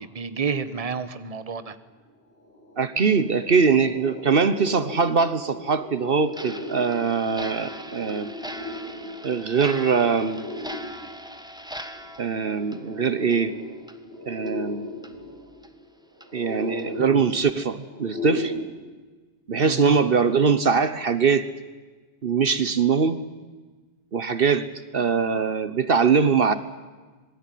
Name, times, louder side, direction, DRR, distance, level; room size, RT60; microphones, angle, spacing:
voice 1, 0.0-1.8 17.0-17.2 19.6-20.0, right 5 dB, 35° right, 12 dB, 1.2 m, -30 dB
sound 1, 2.0-2.1 2.4-18.6, left 1 dB, 80° left, 7.0 m, -37 dB
voice 2, 2.8-8.3 9.2-10.4 12.2-13.5 14.3-14.9 16.3-18.5 19.5-21.5 22.2-23.2 24.1-24.7 24.9-26.5, right 5 dB, 60° right, 12 dB, 1.2 m, -22 dB
Clock, 6.3-13.5 13.8-14.0 14.5-14.6 15.0-15.1 15.6-15.7 16.2-16.3 16.8-17.0, equal, 5° right, 1.5 m, -40 dB
26.5 x 21.0 x 9.2 m, 1.3 s
omnidirectional pair, 1.1 m